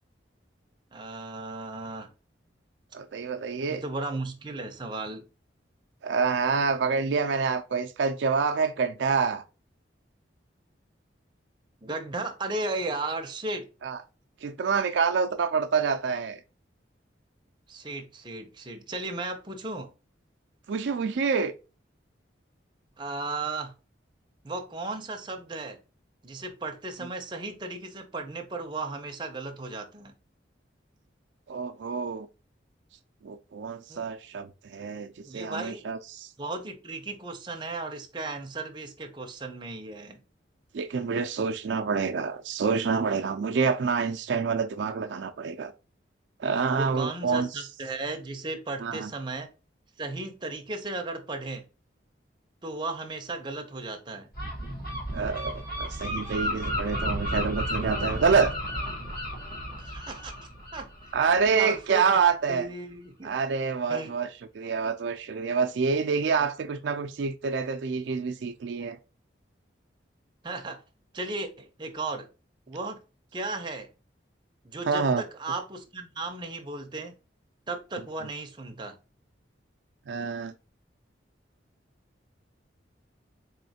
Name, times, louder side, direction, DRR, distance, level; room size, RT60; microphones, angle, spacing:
voice 1, 0.9-2.1 3.7-5.2 11.8-13.7 17.7-19.9 23.0-23.7 24.4-25.8 26.2-30.1 33.9-34.0 35.2-35.9 36.4-40.2 46.7-49.5 50.0-51.7 52.6-54.3 59.8-61.1 61.6-62.2 62.5-63.4 63.9-64.1 70.4-70.8 71.1-72.3 72.7-73.0 73.3-73.9 74.6-77.1 77.7-79.0, right 2 dB, 25° right, 0.6 m, -35 dB
voice 2, 2.9-3.8 6.0-9.4 13.8-14.0 14.4-16.4 20.7-21.5 31.5-32.3 33.2-36.3 40.7-45.7 46.4-47.5 48.8-49.1 55.1-58.5 61.1-62.7 63.2-64.3 64.5-69.0 74.9-75.2 80.1-80.5, right 5 dB, 70° right, 0.4 m, -27 dB
Gull seagull, 54.3-61.8, equal, 55° left, 1.8 m, -33 dB
4.2 x 3.1 x 2.7 m
head